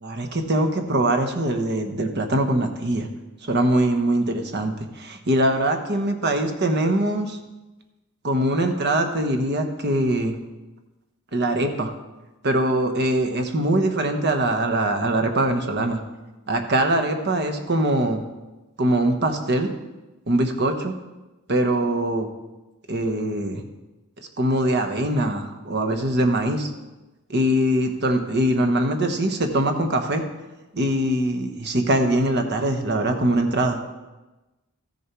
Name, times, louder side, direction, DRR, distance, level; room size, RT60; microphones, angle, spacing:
voice 1, 0.0-3.1 3.4-7.4 8.2-10.4 11.3-11.9 12.4-16.0 16.5-18.2 18.8-19.7 20.3-20.9 21.5-22.3 22.9-23.6 24.4-26.7 27.3-30.2 30.7-33.8, right 1 dB, 50° right, 5 dB, 1.0 m, -22 dB
14.0 x 6.7 x 4.6 m, 1.1 s
head